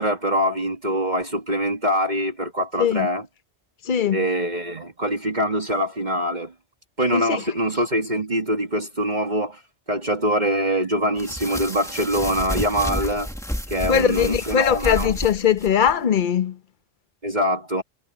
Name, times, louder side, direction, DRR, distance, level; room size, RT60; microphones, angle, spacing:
voice 1, 0.0-3.2 4.1-6.5 7.0-9.6 9.9-13.3 13.7-15.1 17.2-17.8, equal, 40° right, 2.3 m, -24 dB
voice 2, 3.8-4.3 7.1-7.4 13.9-16.6, left 8 dB, 50° left, 1.0 m, -20 dB
sound 1, 11.2-15.9, equal, 5° left, 1.7 m, -31 dB
omnidirectional pair, 1.1 m